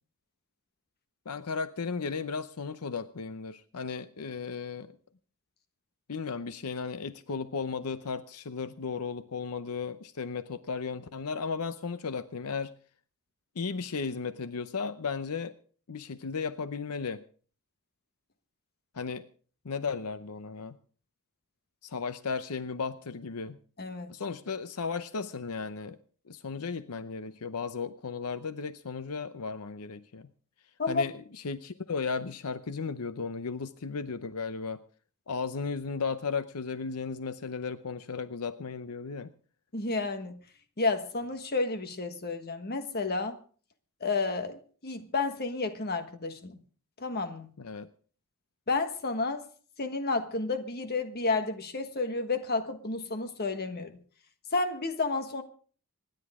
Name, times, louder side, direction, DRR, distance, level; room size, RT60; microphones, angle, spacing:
voice 1, 1.3-5.0 6.1-12.7 13.6-15.5 15.9-17.2 18.9-19.2 19.6-20.8 21.8-23.6 24.1-26.0 26.3-30.3 30.9-34.8 35.3-39.3 47.6-47.9, left 5 dB, 80° left, 0.7 m, -35 dB
voice 2, 23.8-24.1 30.8-31.0 39.7-40.4 40.8-43.4 44.0-46.6 47.0-47.5 48.7-49.4 49.8-54.0 54.5-55.4, left 3 dB, 45° left, 1.4 m, -31 dB
26.0 x 10.5 x 3.6 m
head